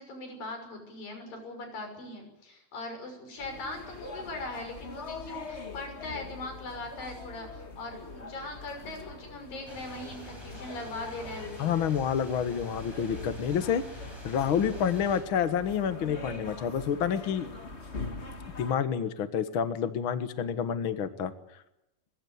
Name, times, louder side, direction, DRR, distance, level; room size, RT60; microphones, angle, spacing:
voice 1, 0.0-11.7, left 2 dB, 75° left, 5 dB, 7.9 m, -40 dB
sound 1, 3.4-18.7, left 3 dB, 25° left, 1.6 m, -43 dB
sound 2, 9.7-15.2, right 1 dB, 5° right, 7.6 m, -46 dB
voice 2, 11.6-13.8 14.2-17.4 18.6-21.3, left 8 dB, 50° left, 10 dB, 1.6 m, -28 dB
23.0 x 22.0 x 8.3 m, 0.88 s
omnidirectional pair, 4.0 m